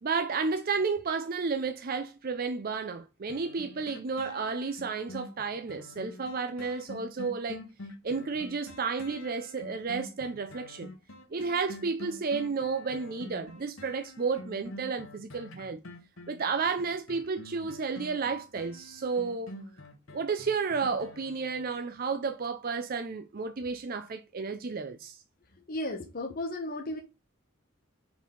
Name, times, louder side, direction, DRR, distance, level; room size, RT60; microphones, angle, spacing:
voice 1, 0.0-7.6 8.0-10.9 11.3-15.8 16.3-19.5 20.1-25.2, right 4 dB, 45° right, 0.5 m, -32 dB
sound 1, 3.3-22.0 22.4-22.5, left 1 dB, 80° left, 1.2 m, -47 dB
voice 2, 25.5-27.0, left 1 dB, 45° left, 1.0 m, -35 dB
5.0 x 4.0 x 5.2 m
head